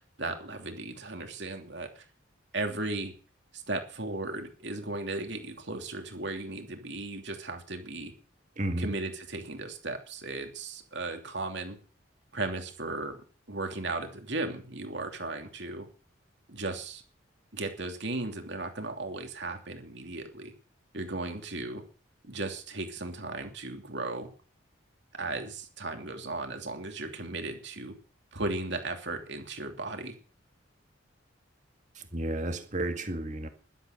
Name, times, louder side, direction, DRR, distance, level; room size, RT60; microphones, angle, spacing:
voice 1, 0.2-2.0 2.5-3.1 3.5-8.1 8.8-11.8 12.3-13.1 13.5-15.9 16.5-17.0 17.5-20.5 20.9-21.8 22.2-24.3 25.1-27.9 28.3-30.1, right 2 dB, 60° right, 5 dB, 2.9 m, -36 dB
voice 2, 8.6-8.9 32.1-33.5, right 1 dB, 35° right, 7 dB, 2.0 m, -32 dB
12.5 x 12.0 x 6.5 m, 0.40 s
head